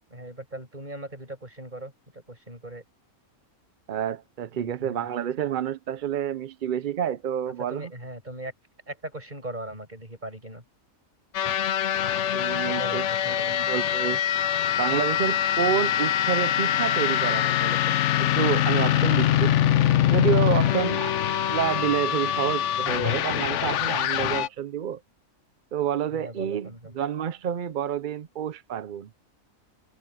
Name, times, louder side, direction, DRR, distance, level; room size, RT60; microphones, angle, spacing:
voice 1, 0.1-2.8 4.5-5.1 7.7-8.5 8.9-10.6 12.6-13.6 20.6-21.0 26.1-27.0, right 1 dB, 30° right, 7.7 m, -39 dB
voice 2, 3.9-7.9 12.3-14.2 14.8-19.5 20.1-21.2 21.5-25.0 25.7-26.7 26.9-29.1, right 9 dB, 55° right, 0.5 m, -29 dB
sound 1, 11.3-24.5, left 11 dB, 65° left, 0.9 m, -24 dB
omnidirectional pair, 1.5 m